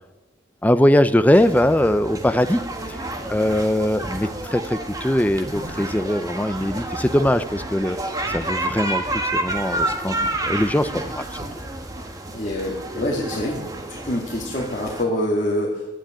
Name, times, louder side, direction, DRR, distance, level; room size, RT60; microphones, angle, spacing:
voice 1, 0.6-2.6 2.9-3.0 3.3-8.0 8.3-11.4, left 1 dB, 10° left, 11 dB, 0.5 m, -21 dB
sound 1, 1.3-15.0, right 1 dB, 20° right, 1.4 m, -30 dB
sound 2, 3.9-12.4, right 1 dB, 50° right, 5.6 m, -43 dB
voice 2, 12.3-15.9, left 1 dB, 40° left, -3 dB, 2.1 m, -26 dB
11.5 x 10.0 x 9.0 m, 1.2 s
head